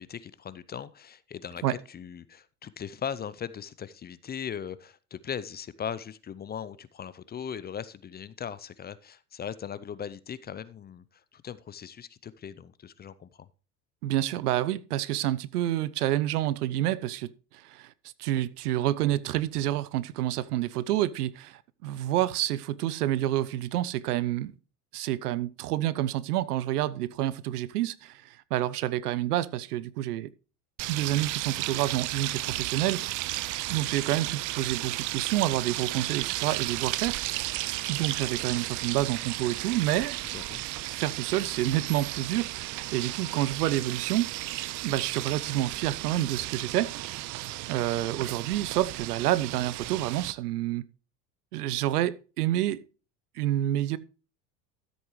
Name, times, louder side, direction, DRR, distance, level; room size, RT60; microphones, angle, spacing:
voice 1, 0.0-13.5 40.3-40.6, left 8 dB, 20° left, 0.5 m, -39 dB
voice 2, 14.0-17.9 18.2-24.5 24.9-30.3 30.9-33.3 33.7-37.4 37.9-40.2 40.9-44.3 44.8-47.2 47.7-50.8 51.5-52.8 53.4-54.0, right 14 dB, 80° right, 0.7 m, -28 dB
sound 1, 30.8-50.3, right 18 dB, 40° right, 0.6 m, -34 dB
13.0 x 7.9 x 3.1 m
hypercardioid pair, 80°, 46 cm